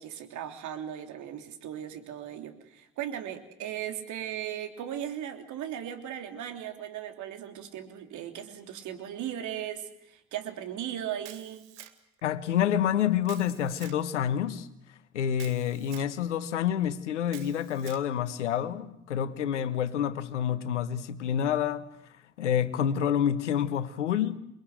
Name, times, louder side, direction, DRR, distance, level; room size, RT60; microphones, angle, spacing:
voice 1, 0.0-11.6, right 10 dB, 55° right, 3.3 m, -37 dB
Camera, 11.2-12.2 13.2-14.0 15.3-16.1 17.3-18.1, right 13 dB, 70° right, 2.0 m, -48 dB
voice 2, 12.2-14.7 15.1-21.9 22.4-24.4, left 9 dB, 75° left, 1.3 m, -28 dB
28.5 x 21.5 x 8.0 m
figure-of-eight pair, 55°, 36 cm